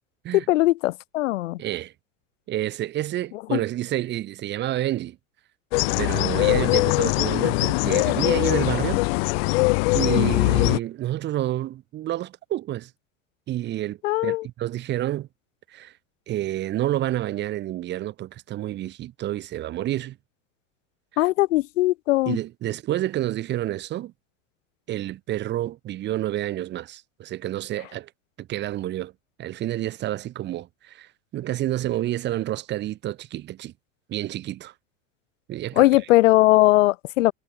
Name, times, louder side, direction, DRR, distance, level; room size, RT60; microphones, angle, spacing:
voice 1, 0.3-1.6 3.5-3.6 10.2-10.5 14.0-14.5 21.2-22.4 35.8-37.3, left 17 dB, 70° left, 6.3 m, -20 dB
voice 2, 1.6-1.9 2.5-5.2 6.0-9.0 9.9-12.9 13.5-15.3 15.7-15.9 16.3-20.2 22.3-24.1 24.9-28.1 28.4-29.1 29.4-33.7 34.1-34.7 35.5-35.9, right 14 dB, 25° right, 7.3 m, -29 dB
sound 1, 5.7-10.8, left 27 dB, 50° left, 1.6 m, -22 dB
supercardioid pair, 175°, 39 cm